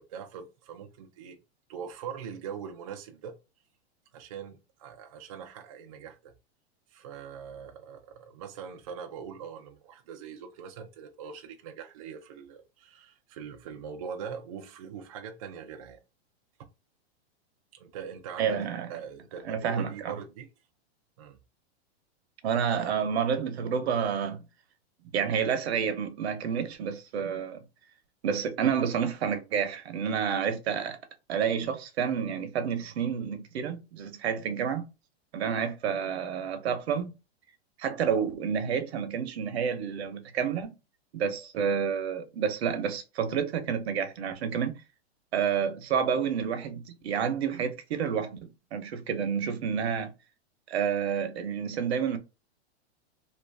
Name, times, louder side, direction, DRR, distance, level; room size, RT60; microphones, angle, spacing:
voice 1, 0.0-1.4 1.7-3.4 4.1-6.3 6.9-16.0 17.7-18.6 18.9-20.5 21.2-21.4, right 7 dB, 35° right, 0.4 m, -42 dB
voice 2, 18.4-18.9 19.5-20.1 22.4-24.4 25.1-27.6 28.2-31.0 31.3-34.8 35.3-37.1 37.8-40.7 41.1-44.7 45.3-50.1 50.7-52.2, right 7 dB, 75° right, 0.9 m, -29 dB
2.9 x 2.6 x 3.2 m
supercardioid pair, 170°, 33 cm